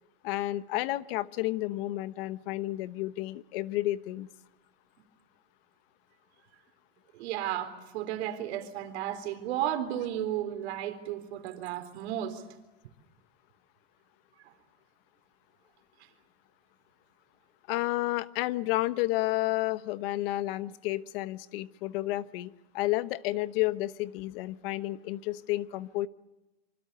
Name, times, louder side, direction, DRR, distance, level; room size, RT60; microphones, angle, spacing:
voice 1, 0.2-4.3 17.7-26.1, left 17 dB, 60° left, 14 dB, 1.1 m, -31 dB
voice 2, 7.1-12.4, right 11 dB, 90° right, 8 dB, 3.9 m, -33 dB
26.0 x 25.0 x 6.9 m, 1.0 s
supercardioid pair, 165°, 31 cm